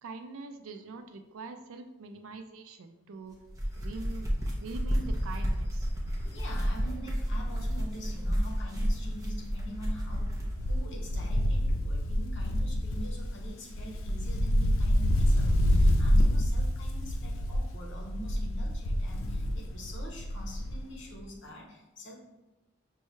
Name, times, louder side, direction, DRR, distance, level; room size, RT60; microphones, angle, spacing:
voice 1, 0.0-3.4 3.8-4.3 4.6-5.9, right 3 dB, 80° right, 8 dB, 0.4 m, -43 dB
sound 1, 3.4-10.6, equal, 15° right, 0.7 m, -31 dB
Wind, 3.9-4.2 4.5-4.6 4.9-8.5 8.8-20.9 21.2-21.3, equal, 75° left, 0.5 m, -28 dB
voice 2, 6.3-22.1, equal, 60° left, -1 dB, 0.8 m, -45 dB
5.4 x 2.3 x 3.1 m, 1.0 s
head